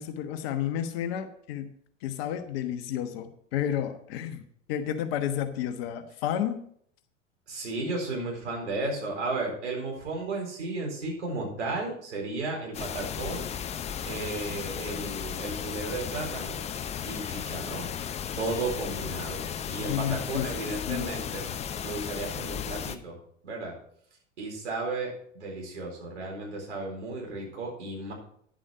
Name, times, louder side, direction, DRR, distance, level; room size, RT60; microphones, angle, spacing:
voice 1, 0.0-1.7 2.0-4.4 4.7-6.7 19.8-21.2, left 10 dB, 50° left, 9 dB, 1.2 m, -31 dB
voice 2, 7.5-13.5 14.0-16.6 17.0-17.9 18.4-21.5 21.8-23.2 23.4-23.7 24.4-28.1, right 2 dB, 65° right, 0 dB, 4.3 m, -34 dB
sound 1, 12.7-23.0, left 8 dB, 15° left, 0.5 m, -35 dB
10.5 x 7.6 x 5.0 m, 0.64 s
figure-of-eight pair, 85°, 37 cm